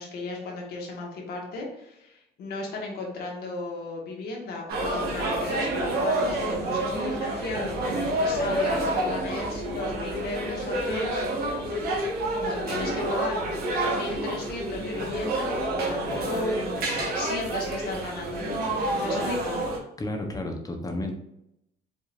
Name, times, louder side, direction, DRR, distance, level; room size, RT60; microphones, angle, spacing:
voice 1, 0.0-11.2 12.3-13.4 13.8-16.6 17.1-19.6, left 2 dB, 70° left, -1 dB, 1.6 m, -35 dB
sound 1, 4.7-19.8, right 1 dB, 65° right, 1.5 m, -28 dB
voice 2, 20.0-21.1, left 1 dB, 20° left, 3 dB, 0.9 m, -32 dB
5.1 x 3.7 x 2.6 m, 0.82 s
cardioid pair, 110°, 17 cm